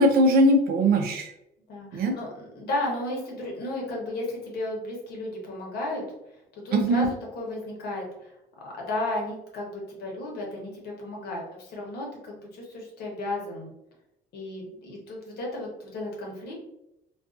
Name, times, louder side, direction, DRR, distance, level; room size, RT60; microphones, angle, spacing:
voice 1, 0.0-1.3 1.9-2.1 6.7-7.1, right 1 dB, 65° right, 4 dB, 0.6 m, -20 dB
voice 2, 1.7-6.0 6.6-8.0 8.6-13.7 14.3-16.5, left 2 dB, 70° left, -1 dB, 1.0 m, -34 dB
2.5 x 2.3 x 2.4 m, 0.85 s
cardioid pair, 110°, 17 cm